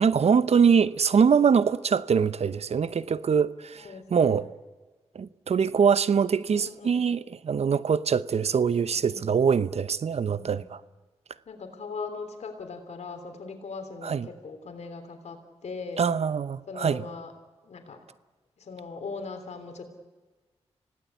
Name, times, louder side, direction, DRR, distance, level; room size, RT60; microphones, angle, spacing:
voice 1, 0.0-3.8 4.1-4.4 5.1-10.8 14.0-14.3 16.0-17.0, right 6 dB, 65° right, 0.8 m, -23 dB
voice 2, 3.8-4.4 6.5-7.0 8.8-9.3 10.3-10.7 11.5-16.0 16.7-17.3 17.6-18.0 18.6-19.8, left 4 dB, 75° left, 3.4 m, -40 dB
26.0 x 17.5 x 8.4 m
cardioid pair, 45°, 12 cm